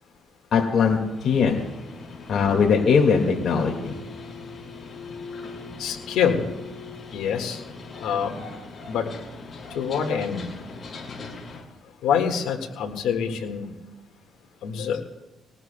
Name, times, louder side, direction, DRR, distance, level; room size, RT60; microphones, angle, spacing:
voice 1, 0.5-1.6 2.3-3.9, left 5 dB, 65° left, -1 dB, 2.0 m, -20 dB
sound 1, 1.0-11.6, left 3 dB, 40° left, 6.4 m, -40 dB
voice 2, 5.8-6.4 7.1-7.6 8.0-8.4 8.9-9.1 9.7-10.4 12.0-13.6 14.6-15.0, left 7 dB, 90° left, 2 dB, 1.7 m, -25 dB
21.0 x 18.5 x 2.3 m, 1.1 s
cardioid pair, 90°, 0 cm